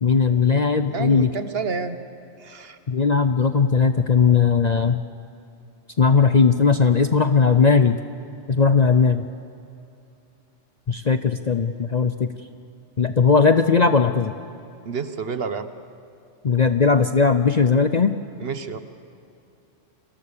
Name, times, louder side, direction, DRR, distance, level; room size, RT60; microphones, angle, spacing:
voice 1, 0.0-1.3 2.9-5.0 6.0-8.0 8.5-9.3 10.9-12.3 13.0-14.3 16.4-18.1, left 5 dB, 45° left, 9 dB, 0.6 m, -18 dB
voice 2, 0.9-2.0 2.4-2.8 14.8-15.7 18.4-18.8, right 5 dB, 50° right, 10 dB, 1.3 m, -29 dB
29.5 x 23.0 x 6.8 m, 2.7 s
omnidirectional pair, 1.3 m